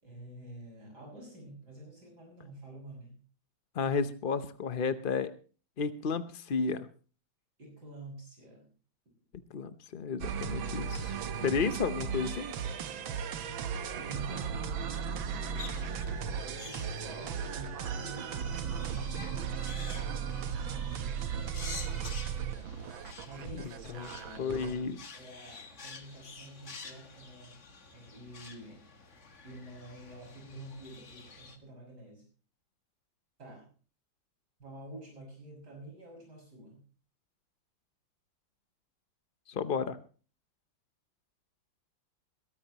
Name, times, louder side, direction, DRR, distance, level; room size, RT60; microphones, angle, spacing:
voice 1, 0.0-3.2 7.6-8.7 13.4-19.6 23.2-27.6 27.9-28.9 29.4-32.2 33.4-33.7 34.6-36.8, right 1 dB, 55° right, 0 dB, 6.8 m, -48 dB
voice 2, 3.7-5.3 5.8-6.9 9.5-11.1 11.4-12.5 23.9-24.1 24.4-25.0 39.5-40.0, left 5 dB, 60° left, 11 dB, 0.5 m, -32 dB
sound 1, 10.2-24.8, right 7 dB, 85° right, 1.9 m, -36 dB
sound 2, 15.6-31.6, left 4 dB, 40° left, 1.9 m, -49 dB
22.0 x 13.5 x 3.0 m, 0.39 s
omnidirectional pair, 2.1 m